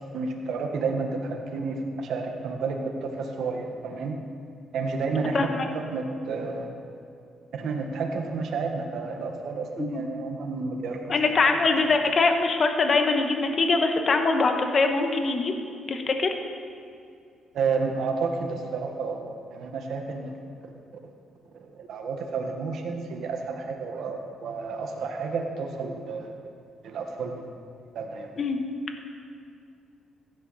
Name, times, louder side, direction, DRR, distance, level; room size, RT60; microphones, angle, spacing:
voice 1, 0.1-4.1 4.7-5.4 5.7-6.7 7.5-11.2 17.5-20.4 21.7-26.5 26.8-27.4 27.9-28.3, right 4 dB, 70° right, 3 dB, 1.5 m, -31 dB
voice 2, 5.3-5.6 9.8-10.0 11.1-15.5 15.9-16.3 28.4-28.6, left 3 dB, 45° left, 5 dB, 1.3 m, -23 dB
15.5 x 10.5 x 4.2 m, 2.4 s
cardioid pair, 90°, 0 cm